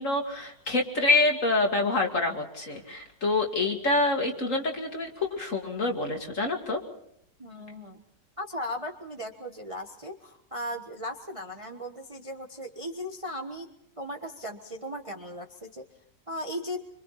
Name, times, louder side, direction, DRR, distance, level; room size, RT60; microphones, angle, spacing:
voice 1, 0.0-6.8, left 2 dB, 45° left, 2 dB, 2.7 m, -26 dB
voice 2, 7.4-8.0 8.4-13.7 14.0-15.8 16.3-16.8, equal, 20° right, 4 dB, 1.2 m, -37 dB
25.5 x 25.5 x 4.2 m, 0.72 s
omnidirectional pair, 1.9 m